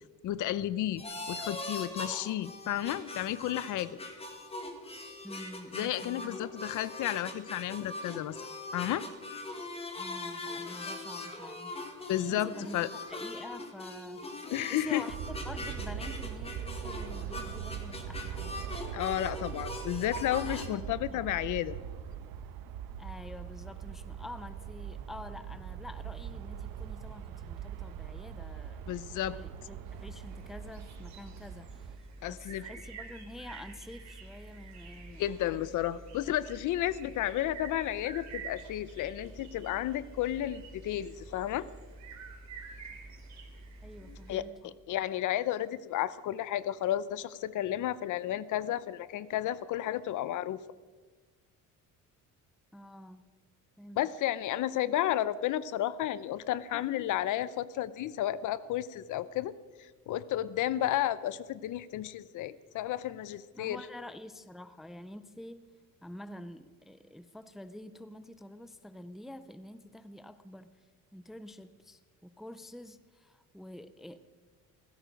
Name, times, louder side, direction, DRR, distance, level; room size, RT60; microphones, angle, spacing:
voice 1, 0.2-4.0 5.7-8.4 8.7-9.0 12.1-12.9 14.5-15.0 18.9-21.8 28.9-29.4 32.2-32.7 35.2-41.7 44.1-50.6 54.0-59.5 59.8-63.8, left 12 dB, 65° left, 17 dB, 0.7 m, -32 dB
sound 1, 1.0-20.7, left 2 dB, 15° left, 1.7 m, -41 dB
voice 2, 5.2-6.5 10.0-11.8 12.3-12.8 13.1-14.4 14.7-18.6 20.4-21.2 23.0-28.8 29.2-32.0 32.3-35.8 43.8-44.6 52.7-53.2 53.8-54.1 63.5-65.7 66.0-70.7 71.1-74.2, left 1 dB, ahead, 12 dB, 0.5 m, -47 dB
sound 2, 15.1-32.0, right 8 dB, 80° right, 1.1 m, -41 dB
sound 3, 29.8-44.4, right 3 dB, 55° right, 3.0 m, -48 dB
17.5 x 15.5 x 5.2 m, 1.4 s
cardioid pair, 165°, 33 cm